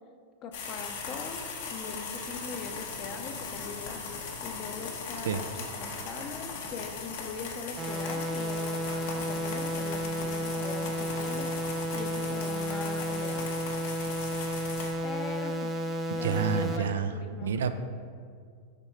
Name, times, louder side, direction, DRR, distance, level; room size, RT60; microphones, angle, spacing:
voice 1, 0.4-1.4 1.7-4.0 4.4-13.5 15.0-15.8 16.2-17.5, left 5 dB, 35° left, 6 dB, 0.6 m, -41 dB
sound 1, 0.5-14.9, left 4 dB, 70° left, 1.0 m, -39 dB
sound 2, 7.8-16.8, equal, 20° right, 0.6 m, -32 dB
voice 2, 16.2-17.1 17.4-17.7, right 7 dB, 85° right, 10 dB, 0.4 m, -28 dB
6.7 x 3.5 x 4.5 m, 2.1 s
hypercardioid pair, 125°, 0 cm